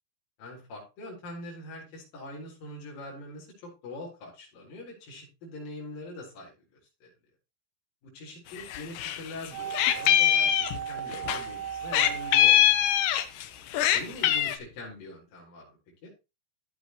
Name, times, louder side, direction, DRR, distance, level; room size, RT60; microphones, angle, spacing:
voice 1, 0.4-6.5 7.0-7.1 8.0-13.0 13.9-16.1, left 1 dB, 50° left, -4 dB, 5.7 m, -43 dB
Meow, 8.6-9.2 9.4-11.4 11.9-13.4 13.7-14.6, left 12 dB, 80° left, 1.9 m, -22 dB
sound 1, 9.5-13.6 13.9-14.0, right 9 dB, 75° right, 3.4 m, -37 dB
14.0 x 8.0 x 3.0 m, 0.27 s
omnidirectional pair, 5.2 m